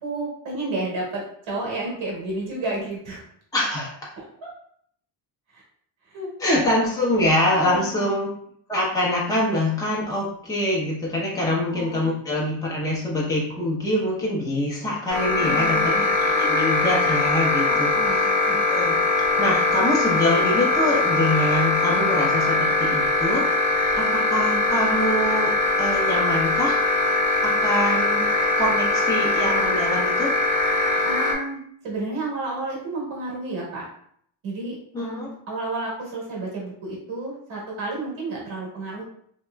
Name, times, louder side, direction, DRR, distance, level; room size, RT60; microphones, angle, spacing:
voice 1, 0.0-3.2 4.2-4.5 5.5-5.6 6.0-6.6 7.6-8.1 11.7-12.1 15.4-16.1 17.6-18.3 31.0-33.9 34.4-39.0, right 2 dB, 80° right, -4 dB, 1.5 m, -31 dB
voice 2, 3.5-3.9 6.4-8.3 8.7-15.9 16.2-23.4 24.0-25.5 25.8-26.8 27.4-28.3 28.6-30.3 34.9-35.3, left 1 dB, 10° left, -5 dB, 0.8 m, -25 dB
sound 1, 15.1-31.3, left 2 dB, 35° left, 1.0 m, -21 dB
2.9 x 2.9 x 2.3 m, 0.65 s
cardioid pair, 100°, 46 cm